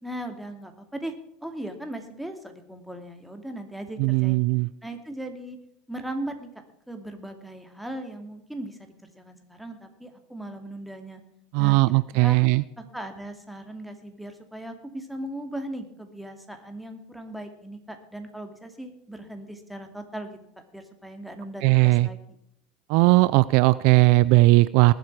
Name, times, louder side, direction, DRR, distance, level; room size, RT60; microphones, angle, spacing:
voice 1, 0.0-1.1 1.4-4.4 4.8-5.6 5.9-6.5 6.9-11.2 11.6-12.4 12.8-20.4 20.7-22.2, right 1 dB, 5° right, 5 dB, 2.5 m, -38 dB
voice 2, 4.0-4.7 11.5-12.6 21.6-22.1 22.9-24.9, right 21 dB, 65° right, 18 dB, 0.4 m, -18 dB
20.0 x 7.9 x 4.7 m, 0.74 s
hypercardioid pair, 85°, 0 cm